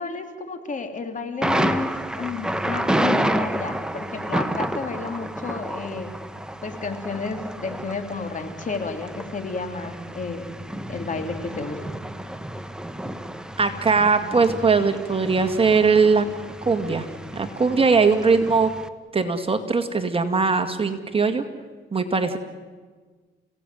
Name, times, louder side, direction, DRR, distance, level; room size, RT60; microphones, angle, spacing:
voice 1, 0.0-6.1 6.6-10.5 10.9-11.9, left 4 dB, 40° left, 6 dB, 3.5 m, -31 dB
Thunder, 1.4-18.9, right 1 dB, 5° right, 1.5 m, -30 dB
voice 2, 13.6-16.3 16.7-17.1 17.3-18.7 19.1-21.5 21.9-22.4, right 4 dB, 30° right, 7 dB, 2.2 m, -20 dB
30.0 x 17.5 x 9.4 m, 1.4 s
cardioid pair, 90°, 20 cm